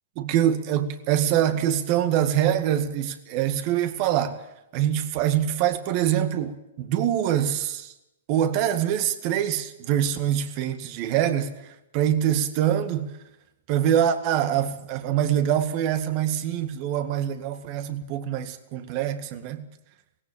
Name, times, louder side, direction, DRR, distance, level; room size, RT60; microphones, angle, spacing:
voice 1, 0.2-4.4 4.7-7.9 8.3-13.2 13.7-19.6, right 10 dB, 45° right, 2.0 m, -24 dB
18.5 x 16.5 x 8.8 m
hypercardioid pair, 120°, 0 cm